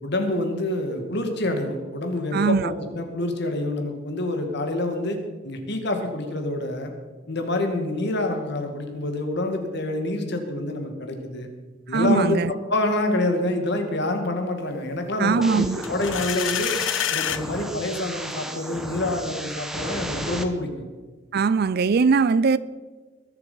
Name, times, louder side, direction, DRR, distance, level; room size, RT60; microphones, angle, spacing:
voice 1, 0.0-5.2 5.4-6.9 7.3-11.5 11.9-16.7 17.1-20.9, left 1 dB, 60° left, 2.1 m, -27 dB
voice 2, 2.3-2.7 11.9-12.5 15.2-15.8 21.3-22.6, right 5 dB, 55° right, 0.4 m, -20 dB
sound 1, 15.4-20.4, right 1 dB, ahead, 1.0 m, -34 dB
sound 2, 15.8-17.4, left 10 dB, 75° left, 0.7 m, -27 dB
21.0 x 7.7 x 5.6 m
head